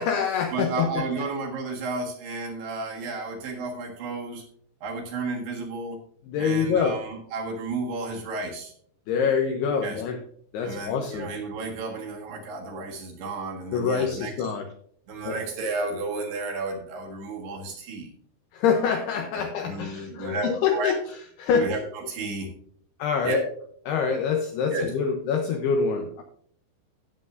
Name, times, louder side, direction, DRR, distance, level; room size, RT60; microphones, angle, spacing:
voice 1, 0.0-1.0 6.3-7.0 9.1-10.2 10.5-11.3 13.7-14.7 15.3-15.4 18.5-21.0 21.4-21.7 23.0-23.4 23.9-26.2, left 6 dB, 80° left, 4 dB, 2.4 m, -25 dB
voice 2, 0.5-4.4 4.8-6.0 6.4-8.7 9.8-10.0 10.6-14.5 15.1-18.1 19.4-20.9 21.5-22.5 23.2-23.4 24.7-24.9, right 3 dB, 65° right, 0 dB, 3.4 m, -32 dB
16.5 x 7.5 x 2.6 m, 0.62 s
omnidirectional pair, 5.5 m